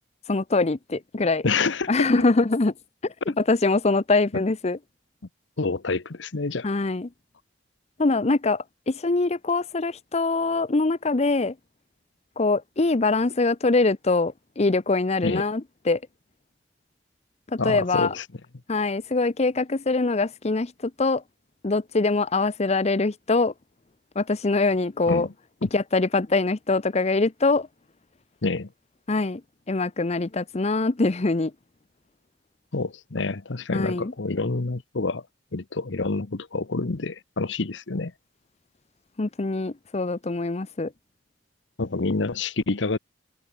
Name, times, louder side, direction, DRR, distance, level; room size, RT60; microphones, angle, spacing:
voice 1, 0.3-1.5 1.9-2.7 3.0-4.8 6.6-7.1 8.0-11.5 12.4-16.0 17.5-18.1 18.7-21.2 21.6-23.5 24.2-25.3 25.7-27.7 29.1-29.4 29.7-31.5 33.7-34.1 39.2-40.9, left 3 dB, 35° left, 0.7 m, -23 dB
voice 2, 1.4-2.3 3.3-3.4 4.3-4.4 5.6-6.7 15.2-15.4 17.6-18.2 25.1-25.3 25.6-25.7 28.4-28.7 32.7-35.2 35.5-38.1 41.8-43.0, left 3 dB, 75° left, 1.0 m, -27 dB
head